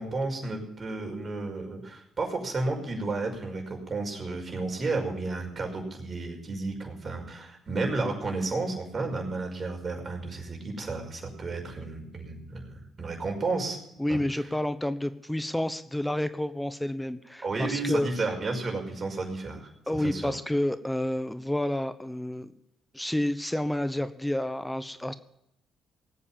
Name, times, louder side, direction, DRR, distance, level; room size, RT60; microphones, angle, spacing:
voice 1, 0.0-13.8 14.1-14.2 17.4-20.4, right 3 dB, 40° right, 3 dB, 5.5 m, -32 dB
voice 2, 14.0-18.1 19.9-22.5 22.9-25.1, left 1 dB, 10° left, 13 dB, 1.0 m, -29 dB
19.0 x 8.5 x 7.4 m, 0.78 s
hypercardioid pair, 50°, 0 cm